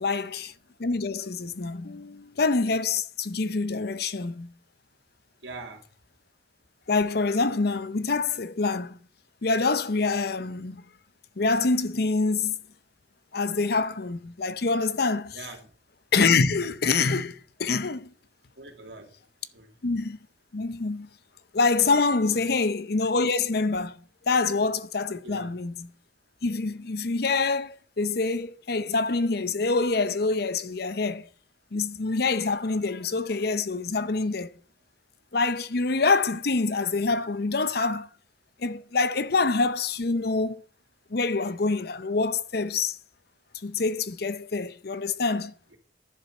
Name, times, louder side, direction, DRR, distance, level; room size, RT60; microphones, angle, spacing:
voice 1, 0.0-0.5 0.8-4.5 6.9-9.0 9.4-10.8 11.4-12.6 13.3-15.4 16.1-18.1 19.8-20.2 20.5-21.1 21.5-24.0 24.3-25.9 26.4-31.3 31.7-34.5 35.3-38.1 38.6-40.6 41.1-43.0 43.6-45.5, left 4 dB, 55° left, 0.7 m, -26 dB
voice 2, 5.4-5.8 15.3-15.6 18.6-19.1 19.5-19.7 22.3-22.5 25.2-25.5, right 3 dB, 70° right, 2.9 m, -42 dB
11.0 x 7.2 x 7.1 m
head